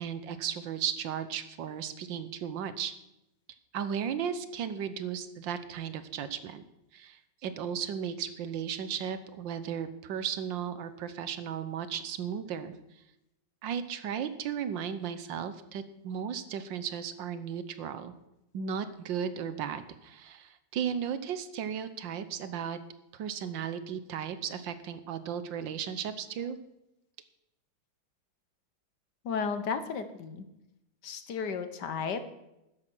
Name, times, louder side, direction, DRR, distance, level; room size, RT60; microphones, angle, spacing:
voice 1, 0.0-2.9 3.7-6.6 6.9-12.7 13.6-18.1 18.5-22.8 23.1-26.6, right 8 dB, 75° right, 12 dB, 1.6 m, -35 dB
voice 2, 29.2-30.4 31.0-32.3, left 5 dB, 65° left, 11 dB, 1.6 m, -33 dB
13.0 x 10.0 x 6.1 m, 0.89 s
omnidirectional pair, 2.1 m